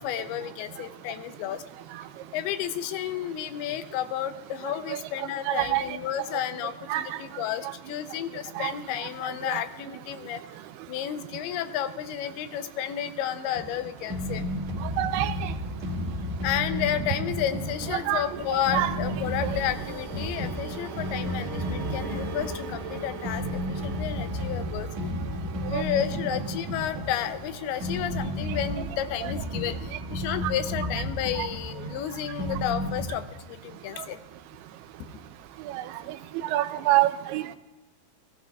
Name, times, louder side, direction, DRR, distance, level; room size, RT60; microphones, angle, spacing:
voice 1, 0.0-1.6 2.3-10.4 10.9-14.4 16.4-34.2, left 11 dB, 85° left, 11 dB, 2.6 m, -32 dB
voice 2, 5.5-5.8 6.9-7.0 8.6-8.7 9.5-9.6 15.0-15.3 18.1-18.2 18.7-18.9 19.4-19.5 25.7-25.8 29.2-29.3 31.4-31.5 35.7-35.8 36.5-37.6, right 15 dB, 90° right, 12 dB, 2.6 m, -25 dB
sound 1, 13.5-33.1, equal, 50° right, 2.6 m, -33 dB
18.5 x 15.5 x 2.3 m, 1.1 s
omnidirectional pair, 4.5 m